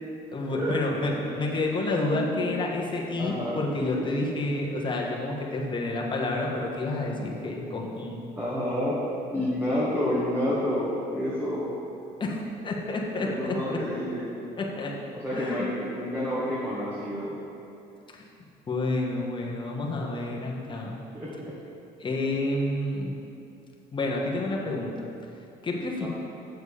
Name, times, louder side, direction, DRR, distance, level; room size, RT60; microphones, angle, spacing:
voice 1, 0.3-8.3 12.2-13.8 14.6-15.0 15.3-15.7 18.1-18.3 18.7-21.0 22.0-23.2 23.9-25.1 25.6-26.1, left 2 dB, 30° left, -2 dB, 1.3 m, -29 dB
voice 2, 2.1-2.6 3.2-3.6 7.0-7.2 8.4-9.0 9.3-11.7 13.2-14.4 15.2-17.4 20.7-20.8 21.1-21.6 26.0-26.1, left 1 dB, 10° right, -9 dB, 1.8 m, -29 dB
7.8 x 7.0 x 5.0 m, 2.6 s
cardioid pair, 110°, 17 cm